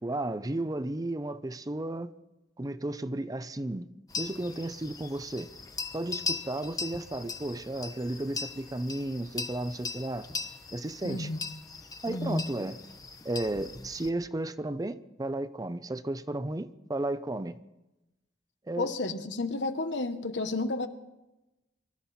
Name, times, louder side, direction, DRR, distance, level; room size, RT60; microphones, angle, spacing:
voice 1, 0.0-2.1 2.6-3.9 4.2-5.5 5.9-10.3 10.7-11.3 12.0-12.8 13.2-17.6 18.7-18.9, right 1 dB, 20° right, 0.5 m, -33 dB
sound 1, 4.1-14.1, left 4 dB, 20° left, 0.9 m, -39 dB
voice 2, 11.0-11.4 12.1-12.5 18.8-20.9, left 2 dB, 90° left, 1.2 m, -31 dB
24.5 x 13.5 x 4.3 m
head